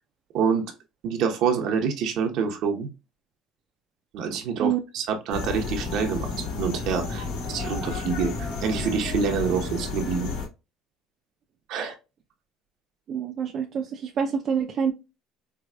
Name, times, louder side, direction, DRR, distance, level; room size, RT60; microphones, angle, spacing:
voice 1, 0.3-0.7 1.0-2.9 4.1-10.3 11.7-11.9, right 6 dB, 70° right, 0.9 m, -27 dB
sound 1, 5.3-10.5, left 4 dB, 80° left, 1.7 m, -31 dB
voice 2, 13.1-14.9, right 7 dB, 50° right, 0.5 m, -26 dB
4.7 x 2.3 x 2.3 m
cardioid pair, 110°, 0 cm